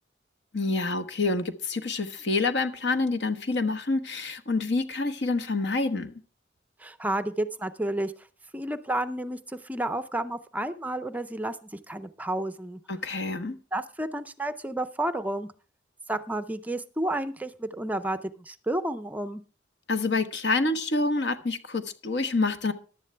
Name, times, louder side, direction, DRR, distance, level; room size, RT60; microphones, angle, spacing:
voice 1, 0.5-6.1 12.9-13.6 19.9-22.7, left 3 dB, 70° left, 1.1 m, -27 dB
voice 2, 6.8-8.1 8.5-12.8 13.7-15.5 16.1-19.4, right 1 dB, 10° right, 0.5 m, -31 dB
15.0 x 11.0 x 3.3 m
head